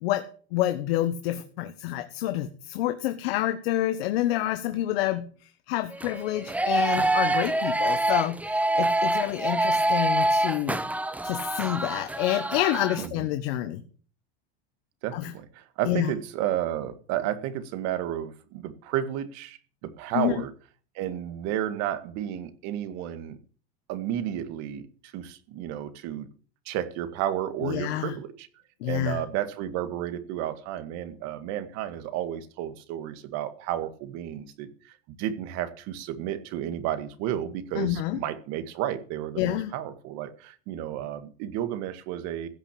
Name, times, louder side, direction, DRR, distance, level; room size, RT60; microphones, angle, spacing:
voice 1, 0.5-5.2 5.7-10.8 11.2-13.8 15.1-15.3 15.8-16.1 20.1-20.4 27.6-28.1 28.8-29.2 37.7-38.2 39.4-39.7, left 14 dB, 80° left, 8 dB, 1.3 m, -28 dB
sound 1, 5.9-13.1, right 2 dB, 5° right, 0.8 m, -26 dB
voice 2, 15.0-20.5 21.0-23.4 23.9-26.3 26.7-28.5 28.8-34.7 35.2-42.5, right 11 dB, 60° right, 11 dB, 2.0 m, -32 dB
15.5 x 6.0 x 8.6 m, 0.42 s
supercardioid pair, 125°, 30 cm